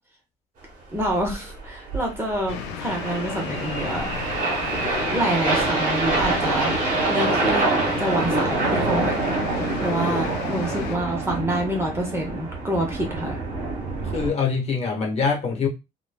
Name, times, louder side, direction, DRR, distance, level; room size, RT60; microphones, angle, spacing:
voice 1, 0.9-4.4 5.1-7.7 8.0-9.2 9.8-13.4, right 1 dB, 15° right, 0 dB, 0.8 m, -27 dB
sound 1, 1.0-14.3, right 3 dB, 50° right, 1.1 m, -26 dB
sound 2, 2.5-11.0, left 8 dB, 90° left, 0.4 m, -35 dB
voice 2, 14.0-15.7, left 5 dB, 40° left, 0 dB, 1.0 m, -24 dB
3.0 x 2.1 x 2.2 m, 0.25 s
cardioid pair, 110°, 17 cm